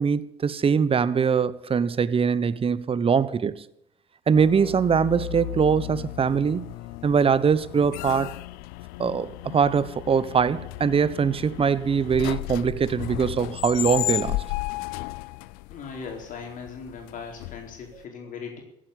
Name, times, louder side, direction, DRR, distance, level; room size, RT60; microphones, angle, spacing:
voice 1, 0.0-3.6 4.3-6.7 7.0-8.3 9.0-14.4, right 6 dB, 35° right, 1.1 m, -22 dB
sound 1, 4.3-18.0, left 20 dB, 75° left, 0.5 m, -34 dB
voice 2, 15.7-18.6, left 5 dB, 60° left, 4.2 m, -38 dB
15.0 x 8.8 x 8.6 m
hypercardioid pair, 55°, 15 cm